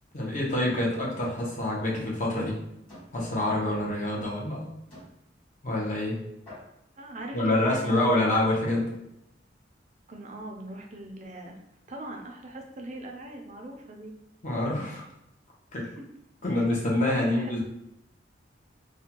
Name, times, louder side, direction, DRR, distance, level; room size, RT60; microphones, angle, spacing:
voice 1, 0.1-2.6 3.1-4.7 5.6-6.2 7.3-8.9 14.4-15.0 15.7-15.9 16.4-17.6, left 1 dB, 40° left, -3 dB, 0.7 m, -26 dB
sound 1, 1.4-1.6 2.0-2.2 2.9-3.1 4.0-4.1 4.9-5.2 6.0-6.1 6.5-6.9, left 1 dB, 25° left, 1.4 m, -48 dB
voice 2, 7.0-8.1 10.1-11.6 11.9-14.1 15.8-16.1 17.2-17.5, right 1 dB, 40° right, 2 dB, 0.4 m, -40 dB
2.6 x 2.2 x 2.8 m, 0.81 s
head